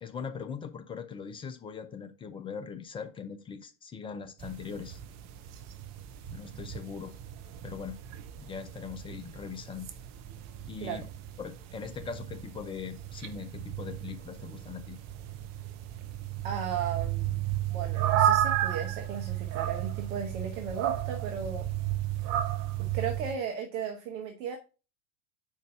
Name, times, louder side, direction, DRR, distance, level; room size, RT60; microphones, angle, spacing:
voice 1, 0.0-5.0 6.3-7.2 7.6-8.0 8.4-9.9 10.7-11.1 11.4-15.0, left 6 dB, 10° left, 8 dB, 0.4 m, -40 dB
sound 1, 4.4-23.4, right 12 dB, 35° right, 0.7 m, -33 dB
voice 2, 16.4-17.4 17.7-21.7 22.8-24.6, right 7 dB, 55° right, 3 dB, 1.2 m, -36 dB
5.1 x 4.6 x 5.6 m, 0.34 s
figure-of-eight pair, 85°, 48 cm